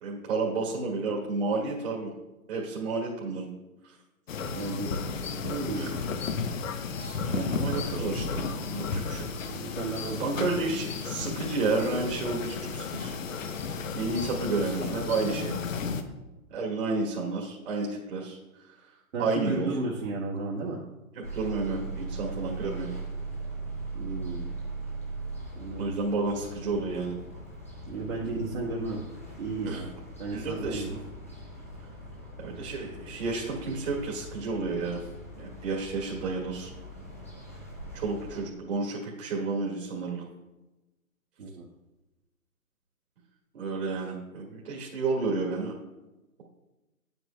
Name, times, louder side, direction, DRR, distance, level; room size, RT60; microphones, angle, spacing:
voice 1, 0.0-2.1 2.5-3.5 5.8-6.0 7.3-8.4 8.7-9.5 10.1-13.1 13.9-15.5 16.5-18.4 19.2-19.7 21.1-22.9 25.8-27.1 29.7-29.9 30.3-31.0 32.4-35.0 35.4-36.7 37.9-40.2 43.5-45.7, right 3 dB, 50° right, -3 dB, 1.8 m, -31 dB
sound 1, 4.3-16.0, left 5 dB, 65° left, 0.9 m, -33 dB
voice 2, 4.5-5.0 5.4-5.9 7.0-7.2 9.5-10.5 19.1-20.8 23.9-24.5 25.5-25.9 27.9-29.0 29.4-29.9 30.2-30.9 41.4-41.7, right 2 dB, 65° right, -4 dB, 1.6 m, -33 dB
sound 2, 21.2-38.4, right 2 dB, 10° left, 0.4 m, -40 dB
9.2 x 8.0 x 2.2 m, 1.0 s
hypercardioid pair, 150°, 43 cm